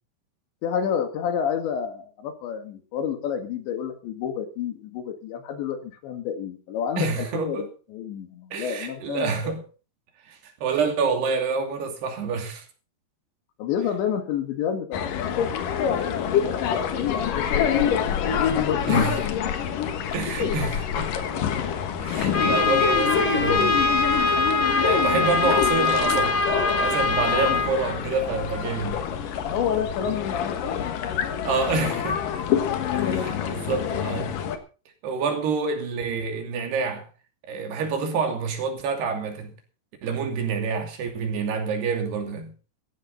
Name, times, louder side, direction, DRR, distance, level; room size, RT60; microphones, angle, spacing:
voice 1, 0.6-9.6 13.6-18.0 18.2-19.1 27.3-27.6 29.4-30.8 32.9-33.3, left 8 dB, 85° left, 4.2 m, -29 dB
voice 2, 7.0-7.7 8.5-9.6 10.3-12.6 18.9-19.1 20.1-21.1 22.0-23.8 24.8-26.4 26.8-29.0 31.4-32.2 32.9-34.3 35.0-37.1 37.5-39.5 40.0-42.5, right 5 dB, 70° right, 4.7 m, -27 dB
sound 1, 14.9-34.6, left 8 dB, 60° left, 2.7 m, -27 dB
Trumpet, 22.3-27.7, left 3 dB, 35° left, 2.0 m, -23 dB
16.0 x 14.0 x 4.0 m
omnidirectional pair, 5.0 m